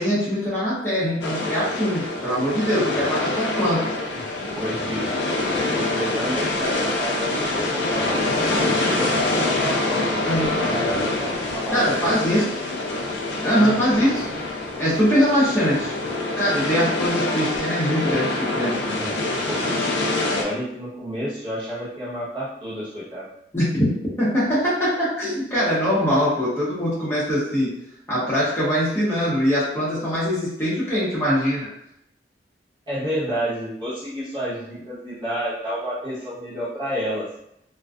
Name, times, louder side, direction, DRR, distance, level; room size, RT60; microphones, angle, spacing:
voice 1, 0.0-3.9 10.3-10.6 11.7-12.5 13.4-14.2 14.8-15.9 16.4-18.8 23.5-23.9 24.2-27.7 28.1-31.7, equal, 15° left, -10 dB, 0.6 m, -22 dB
sound 1, 1.2-20.4, left 2 dB, 80° left, 0.4 m, -25 dB
voice 2, 2.8-3.3 4.1-5.2 5.7-12.5 13.5-13.8 18.8-19.2 19.5-19.7 20.3-23.3 32.9-37.3, equal, 25° right, -9 dB, 1.0 m, -30 dB
2.4 x 2.1 x 2.4 m, 0.78 s
head